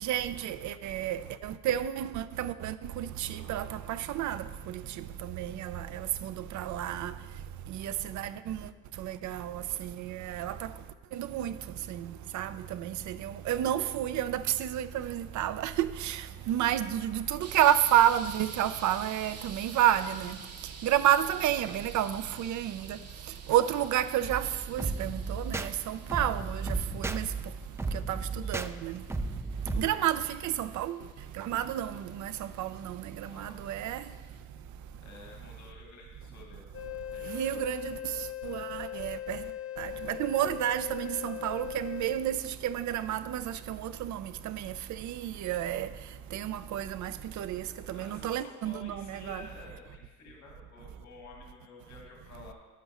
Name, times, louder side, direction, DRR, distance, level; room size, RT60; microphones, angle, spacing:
voice 1, 0.0-4.4 5.4-7.1 7.7-8.6 9.0-10.5 11.1-11.5 11.9-16.2 16.5-20.4 20.8-23.0 23.5-26.7 26.9-27.3 28.1-28.2 28.5-29.0 29.8-31.0 31.4-32.3 32.6-33.0 33.3-34.0 37.3-37.9 38.4-39.4 39.8-44.7 45.0-45.9 46.3-47.1 47.4-49.4, right 11 dB, 70° right, 0.5 m, -30 dB
sound 1, 17.4-34.4, right 5 dB, 55° right, 1.1 m, -51 dB
sound 2, 24.2-29.9, right 3 dB, 10° right, 0.3 m, -35 dB
voice 2, 33.2-33.9 35.0-36.7 37.1-37.7 47.9-52.5, left 4 dB, 65° left, 2.1 m, -51 dB
sound 3, 36.7-42.1, left 12 dB, 50° left, 1.0 m, -39 dB
11.0 x 9.5 x 3.0 m
cardioid pair, 90°, 30 cm